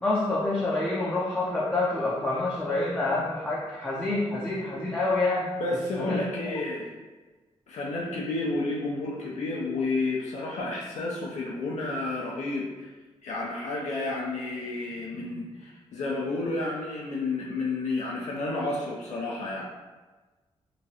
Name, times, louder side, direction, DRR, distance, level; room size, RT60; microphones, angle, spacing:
voice 1, 0.0-5.5 6.0-6.2, left 2 dB, 15° left, -7 dB, 0.4 m, -27 dB
voice 2, 5.6-6.9 7.7-12.9 13.2-19.7, left 2 dB, 80° left, -4 dB, 0.5 m, -31 dB
2.9 x 2.3 x 2.7 m, 1.3 s
wide cardioid pair, 150°, 12 cm